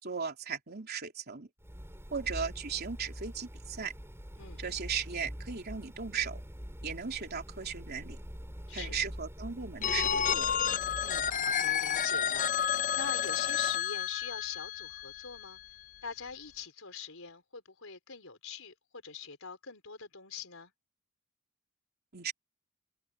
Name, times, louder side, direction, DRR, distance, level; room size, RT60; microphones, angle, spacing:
voice 1, 0.0-1.5 2.1-3.9 4.6-6.4 6.8-8.2 8.7-10.5 22.1-22.3, right 6 dB, 50° right, 3.3 m, -37 dB
sound 1, 1.6-11.4, equal, 15° right, 4.4 m, -44 dB
voice 2, 8.7-9.0 11.0-15.6 16.0-20.7, left 6 dB, 85° left, 4.5 m, -43 dB
Telephone, 9.8-15.6, left 8 dB, 40° left, 0.6 m, -31 dB
head